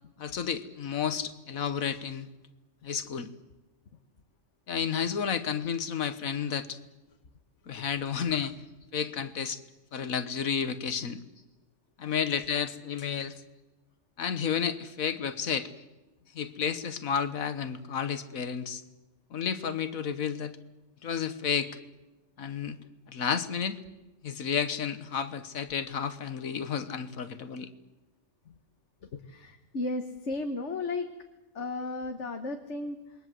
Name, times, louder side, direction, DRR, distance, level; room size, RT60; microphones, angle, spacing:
voice 1, 0.2-2.3 2.8-3.3 4.7-6.8 7.7-8.6 8.9-9.6 9.9-11.2 12.0-13.3 14.2-15.7 16.3-18.8 19.3-20.6 21.0-21.8 22.4-22.8 23.1-23.8 24.2-27.7, left 7 dB, 90° left, 11 dB, 1.7 m, -31 dB
voice 2, 29.1-31.1 31.5-33.1, left 2 dB, 60° left, 6 dB, 1.7 m, -34 dB
27.5 x 21.5 x 7.7 m, 1.1 s
omnidirectional pair, 1.4 m